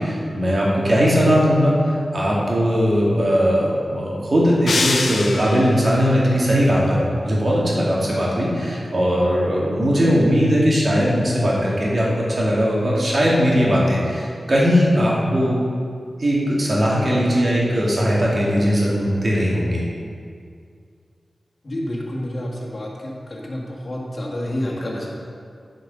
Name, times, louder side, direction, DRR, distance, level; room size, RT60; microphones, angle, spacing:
voice 1, 0.0-15.6 16.2-19.8, equal, 50° right, -5 dB, 2.4 m, -19 dB
sound 1, 4.7-5.9, left 3 dB, 80° left, 0.7 m, -24 dB
voice 2, 21.6-25.1, left 1 dB, 50° left, -3 dB, 1.9 m, -29 dB
9.1 x 5.3 x 5.3 m, 2.3 s
cardioid pair, 55°, 0 cm